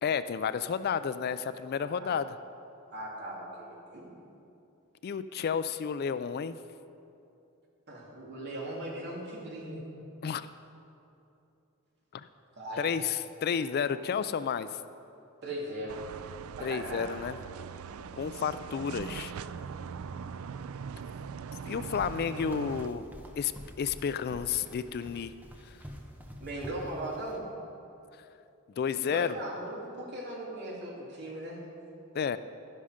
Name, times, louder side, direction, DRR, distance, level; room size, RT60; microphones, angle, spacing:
voice 1, 0.0-2.4 5.0-6.6 10.2-10.5 12.1-12.3 12.8-14.7 16.6-17.4 18.2-19.3 21.7-23.1 23.4-23.5 23.8-25.3 28.8-29.3 32.1-32.4, left 7 dB, 50° left, 13 dB, 0.3 m, -31 dB
voice 2, 2.9-4.1 7.9-9.8 12.6-12.9 15.4-16.0 16.6-17.1 26.4-27.5 29.0-31.6, right 1 dB, 55° right, -3 dB, 2.8 m, -38 dB
sound 1, 15.9-22.9, right 6 dB, 75° right, 0.4 m, -41 dB
sound 2, 21.9-27.4, equal, 10° right, 1.0 m, -48 dB
12.0 x 11.0 x 5.0 m, 2.7 s
head